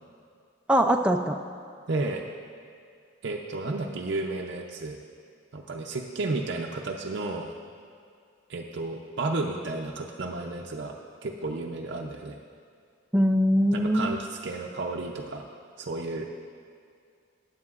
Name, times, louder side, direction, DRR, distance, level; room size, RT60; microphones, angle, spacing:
voice 1, 0.7-1.4 13.1-14.1, equal, 5° right, 4 dB, 0.4 m, -22 dB
voice 2, 1.9-2.2 3.2-5.0 5.5-7.5 8.5-10.9 11.2-12.4 13.7-15.4 15.8-16.3, right 2 dB, 60° right, 0 dB, 0.6 m, -32 dB
15.0 x 9.7 x 2.4 m, 2.3 s
head